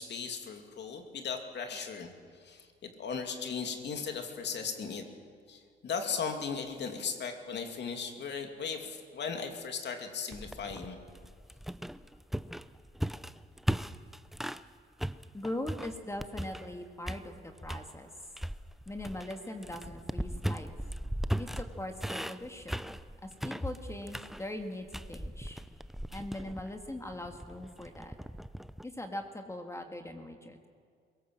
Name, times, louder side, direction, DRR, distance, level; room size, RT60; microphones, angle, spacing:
voice 1, 0.0-2.1 2.4-5.1 5.5-11.0, left 5 dB, 60° left, 5 dB, 2.6 m, -37 dB
sound 1, 10.3-14.7 15.0-16.8 17.0-17.9 18.4-28.8, equal, ahead, 0.6 m, -38 dB
voice 2, 15.3-18.1 18.9-20.7 21.4-22.8 23.2-25.6 26.1-28.2 28.8-30.6, left 1 dB, 15° left, 5 dB, 1.9 m, -40 dB
22.0 x 17.5 x 7.5 m, 2.1 s
cardioid pair, 90°, 20 cm